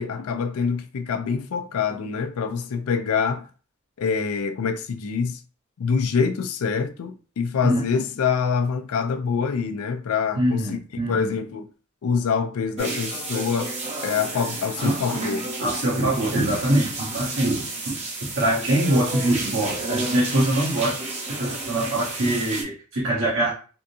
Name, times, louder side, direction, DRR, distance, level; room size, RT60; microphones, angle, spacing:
voice 1, 0.0-3.4 4.0-5.4 5.8-11.7 12.0-13.7 14.0-15.5, left 6 dB, 85° left, 0.4 m, -25 dB
voice 2, 10.4-11.3 14.8-15.0 15.6-18.0 18.3-21.0 21.4-23.5, right 1 dB, 70° right, 1.0 m, -23 dB
sound 1, 12.8-22.6, right 2 dB, 30° right, 0.8 m, -31 dB
3.5 x 2.6 x 2.6 m
head